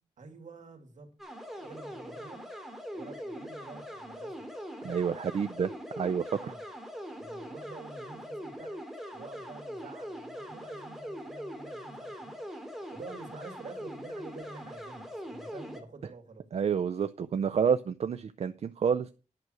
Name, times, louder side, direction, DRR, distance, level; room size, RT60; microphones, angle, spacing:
voice 1, 0.2-1.1 1.6-2.5 2.9-4.4 6.4-6.6 7.2-8.8 9.1-12.3 12.9-16.5, right 4 dB, 70° right, 2.7 m, -48 dB
sound 1, 1.2-15.8, equal, ahead, 2.4 m, -42 dB
voice 2, 4.8-5.7 6.0-6.5 16.5-19.1, right 7 dB, 55° right, 0.5 m, -29 dB
11.0 x 6.1 x 6.3 m
wide cardioid pair, 135°, 13 cm